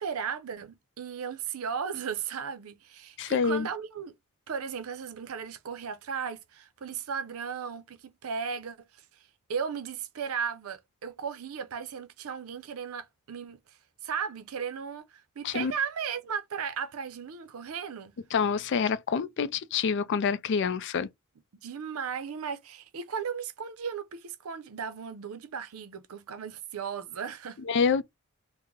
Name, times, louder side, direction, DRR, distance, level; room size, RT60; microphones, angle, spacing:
voice 1, 0.0-4.1 4.5-18.2 21.5-27.6, right 6 dB, 80° right, 0.5 m, -36 dB
voice 2, 3.2-3.7 15.4-15.7 18.3-21.1 27.7-28.0, left 6 dB, 55° left, 0.4 m, -27 dB
3.1 x 2.1 x 3.6 m
head